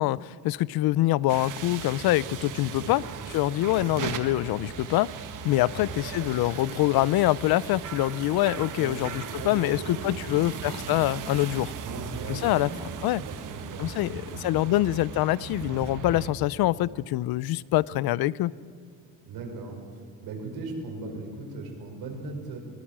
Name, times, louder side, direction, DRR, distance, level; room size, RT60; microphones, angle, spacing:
voice 1, 0.0-3.0 3.3-5.1 5.4-11.7 12.3-13.2 13.8-18.5, left 16 dB, 85° left, 21 dB, 0.6 m, -25 dB
sound 1, 1.3-16.3, right 7 dB, 60° right, 1.7 m, -37 dB
voice 2, 5.7-6.1 8.8-10.6 11.8-14.6 19.2-19.8 20.2-22.6, right 3 dB, 85° right, 1 dB, 5.6 m, -39 dB
24.0 x 19.0 x 7.5 m, 2.3 s
cardioid pair, 165°, 36 cm